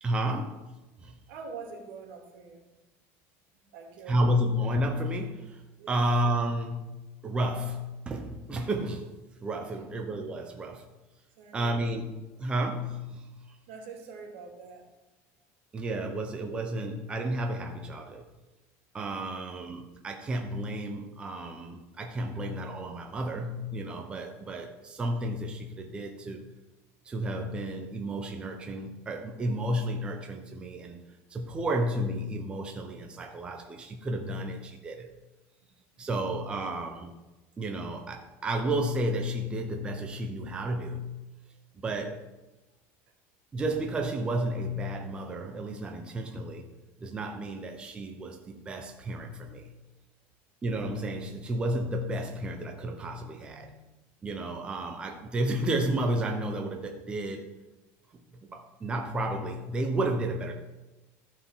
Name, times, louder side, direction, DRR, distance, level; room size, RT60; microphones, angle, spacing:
voice 1, 0.0-0.7 1.0-1.2 4.1-5.6 5.9-9.1 9.4-10.9 11.5-12.1 12.4-13.3 15.7-18.2 18.9-26.4 27.0-31.0 31.3-35.1 36.0-37.1 37.6-41.1 41.8-42.2 43.5-46.7 47.0-49.7 50.6-53.7 54.2-57.5 58.4-60.5, right 1 dB, 15° right, 3 dB, 0.8 m, -32 dB
voice 2, 1.2-2.6 3.7-4.2 5.8-6.1 9.6-9.9 11.4-11.9 13.7-14.8 35.9-36.1 41.7-41.8 53.3-53.7, right 5 dB, 85° right, 1 dB, 2.5 m, -45 dB
14.5 x 4.8 x 5.7 m, 1.1 s
cardioid pair, 170°, 7 cm